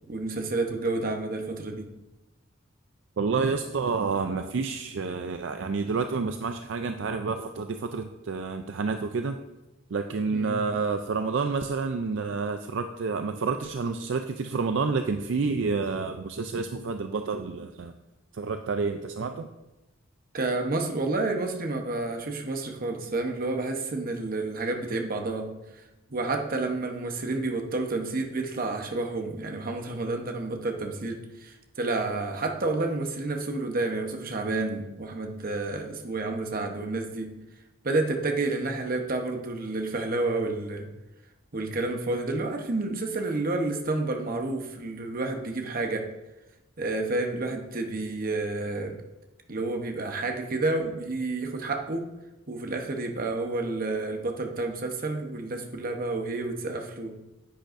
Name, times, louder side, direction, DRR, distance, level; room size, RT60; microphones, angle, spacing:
voice 1, 0.1-1.9 10.3-10.6 20.3-25.5 26.1-37.3 37.8-40.9 41.5-46.0 46.8-49.0 49.5-52.0 52.5-57.1, right 2 dB, 45° right, 3 dB, 1.0 m, -30 dB
voice 2, 3.2-9.4 9.9-17.9 18.3-19.5, right 4 dB, 65° right, 7 dB, 0.4 m, -29 dB
10.0 x 8.9 x 2.6 m, 0.99 s
head